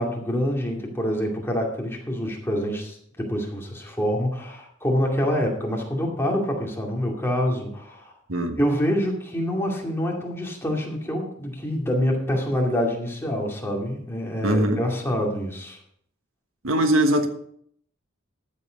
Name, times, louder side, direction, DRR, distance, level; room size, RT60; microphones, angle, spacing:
voice 1, 0.0-8.1 8.6-15.8, equal, 10° left, -1 dB, 2.4 m, -26 dB
voice 2, 14.4-14.8 16.6-17.3, right 1 dB, 80° right, 6 dB, 1.4 m, -21 dB
13.0 x 7.7 x 5.1 m, 0.66 s
head